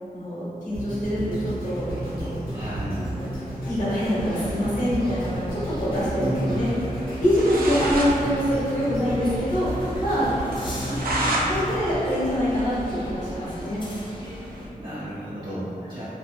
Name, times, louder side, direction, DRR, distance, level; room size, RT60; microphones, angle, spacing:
voice 1, 0.1-2.4 3.0-3.1 3.6-6.7 7.2-10.3 10.9-11.0 11.4-13.8 16.0-16.1, equal, 55° left, -11 dB, 1.0 m, -25 dB
sound 1, 0.7-12.9 13.5-13.6, right 1 dB, 90° left, 1.0 m, -33 dB
voice 2, 2.5-3.0 6.2-6.6 10.9-11.0 14.7-16.1, equal, 30° right, -11 dB, 0.5 m, -31 dB
sound 2, 4.2-14.7, equal, 35° left, 0.5 m, -37 dB
sound 3, 7.3-8.1 8.5-8.6 8.8-8.9 9.3-9.4 9.8-9.9 10.5-11.5 11.9-13.2, right 1 dB, 85° right, 0.4 m, -29 dB
2.6 x 2.4 x 2.6 m, 2.7 s
wide cardioid pair, 85°, 15 cm